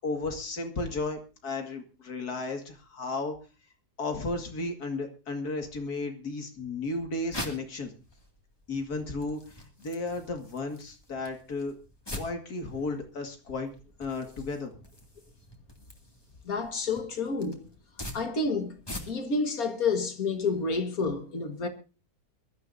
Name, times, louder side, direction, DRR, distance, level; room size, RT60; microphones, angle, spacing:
voice 1, 0.0-3.4 4.0-7.9 8.7-11.7 12.1-13.7 14.0-14.8, left 3 dB, 90° left, 2.6 m, -34 dB
sound 1, 6.7-19.4, left 1 dB, 15° left, 2.3 m, -45 dB
voice 2, 16.5-17.7 18.1-18.8 19.1-21.7, left 4 dB, 70° left, 2.2 m, -29 dB
22.5 x 13.0 x 2.7 m
omnidirectional pair, 1.6 m